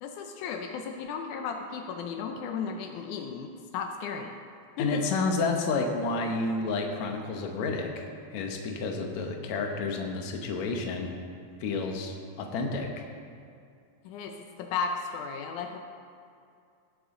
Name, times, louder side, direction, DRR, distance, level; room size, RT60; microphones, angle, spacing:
voice 1, 0.0-4.3 4.8-5.0 14.1-15.8, left 6 dB, 90° left, 4 dB, 1.7 m, -35 dB
voice 2, 4.8-11.2 11.6-12.9, left 3 dB, 70° left, 2 dB, 1.8 m, -30 dB
18.0 x 8.2 x 3.8 m, 2.4 s
omnidirectional pair, 4.4 m